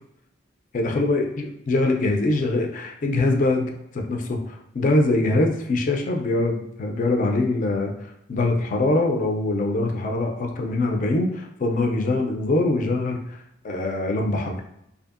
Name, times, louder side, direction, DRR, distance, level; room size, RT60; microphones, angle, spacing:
voice 1, 0.7-7.9 8.3-13.4 13.6-14.6, left 2 dB, 40° left, 2 dB, 0.4 m, -23 dB
2.6 x 2.4 x 2.4 m, 0.78 s
head